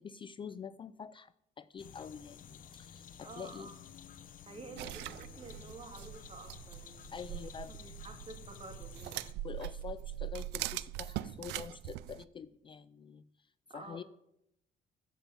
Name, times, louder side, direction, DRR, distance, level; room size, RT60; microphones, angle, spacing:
voice 1, 0.0-3.7 4.8-5.0 7.1-7.8 9.4-14.0, left 7 dB, 30° left, 16 dB, 0.4 m, -46 dB
sound 1, 1.8-9.3, left 8 dB, 55° left, 0.9 m, -52 dB
voice 2, 3.2-3.8 4.5-7.4 7.7-9.3 13.7-14.0, right 3 dB, 35° right, 6 dB, 2.2 m, -50 dB
sound 2, 4.8-12.2, right 15 dB, 90° right, 0.4 m, -42 dB
14.5 x 5.3 x 7.3 m, 0.80 s
cardioid pair, 110°, 17 cm